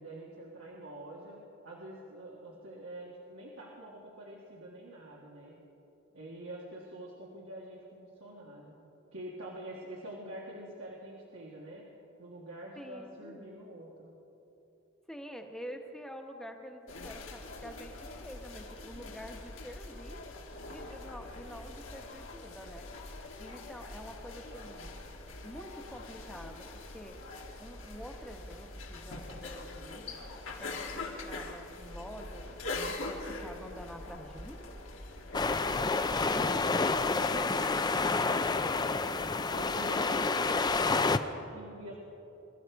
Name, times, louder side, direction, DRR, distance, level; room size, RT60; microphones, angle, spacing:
voice 1, 0.0-5.6 6.1-8.8 9.1-11.9 12.2-14.1 36.9-40.4 41.1-42.0, right 1 dB, 85° right, -4 dB, 1.8 m, -46 dB
voice 2, 12.8-13.5 15.1-17.9 18.2-20.2 20.6-22.9 23.4-25.0 25.4-27.2 27.6-30.2 30.6-32.5 32.9-34.7, equal, 5° left, 4 dB, 1.1 m, -47 dB
sound 1, 16.9-36.2, left 2 dB, 75° left, 1.7 m, -43 dB
sound 2, 35.3-41.2, left 3 dB, 20° left, 0.4 m, -29 dB
23.0 x 13.5 x 4.7 m, 2.9 s
head